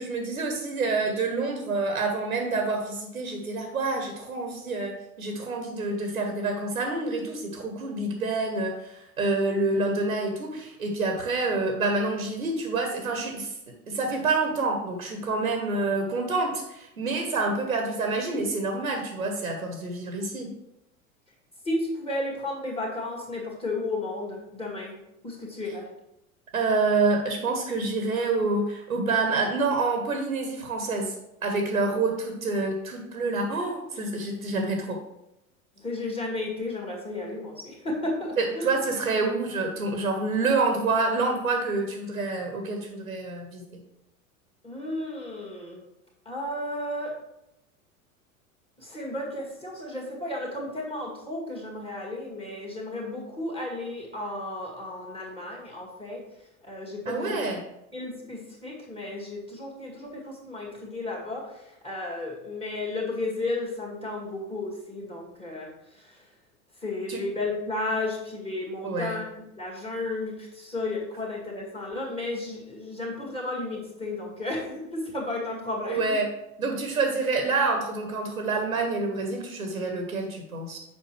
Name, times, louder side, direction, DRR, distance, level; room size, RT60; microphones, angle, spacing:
voice 1, 0.0-4.9 5.2-13.5 13.9-20.5 26.5-31.1 31.4-35.0 38.4-43.6 57.1-57.6 67.1-67.2 68.8-69.2 75.9-76.3 76.6-80.8, right 3 dB, 80° right, 3 dB, 1.1 m, -27 dB
voice 2, 21.6-24.9 25.2-25.9 35.8-38.8 44.6-45.8 46.3-47.2 48.8-56.2 56.6-57.4 57.9-66.2 66.8-76.2, left 2 dB, 15° left, -3 dB, 1.9 m, -33 dB
7.3 x 5.2 x 3.2 m, 0.86 s
figure-of-eight pair, 80°, 43 cm